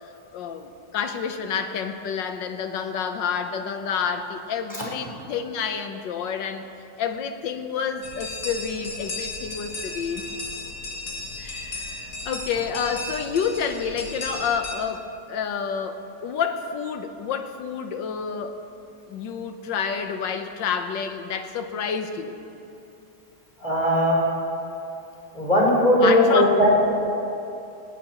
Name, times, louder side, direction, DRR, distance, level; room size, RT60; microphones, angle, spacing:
voice 1, 0.3-6.6 7.0-10.3 11.4-15.0 15.3-18.6 19.1-22.3 26.0-26.6, left 6 dB, 80° left, 7 dB, 1.6 m, -29 dB
sound 1, 8.0-14.8, left 2 dB, 55° left, 1.7 m, -35 dB
voice 2, 23.6-24.2 25.3-26.7, left 1 dB, 25° left, -6 dB, 4.0 m, -19 dB
19.5 x 17.0 x 3.0 m, 2.7 s
omnidirectional pair, 1.9 m